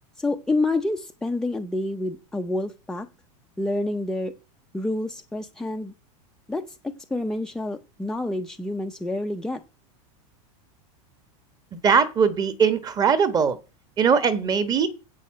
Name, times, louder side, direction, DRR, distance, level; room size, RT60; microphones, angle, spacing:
voice 1, 0.2-3.1 3.6-4.4 4.7-5.9 6.5-9.6, left 2 dB, 5° left, 0.6 m, -28 dB
voice 2, 11.7-13.6 14.0-14.9, right 6 dB, 20° right, 1.2 m, -20 dB
8.3 x 6.5 x 7.5 m
supercardioid pair, 150°, 18 cm